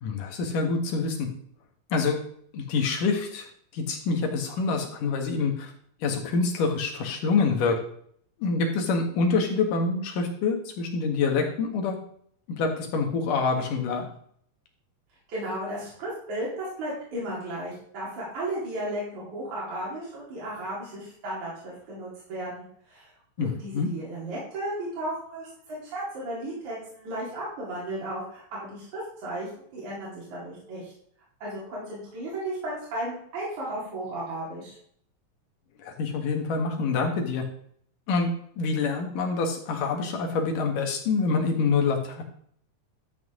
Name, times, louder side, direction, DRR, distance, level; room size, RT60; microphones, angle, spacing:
voice 1, 0.0-1.3 1.9-2.2 2.5-3.5 3.7-5.7 6.0-7.8 8.4-12.0 12.6-14.1 23.4-23.9 35.8-37.4 38.1-42.2, left 4 dB, 80° left, 3 dB, 3.2 m, -26 dB
voice 2, 15.3-23.1 23.4-30.9 31.4-34.8, right 1 dB, 65° right, -6 dB, 4.9 m, -34 dB
12.0 x 8.2 x 3.8 m, 0.63 s
omnidirectional pair, 3.7 m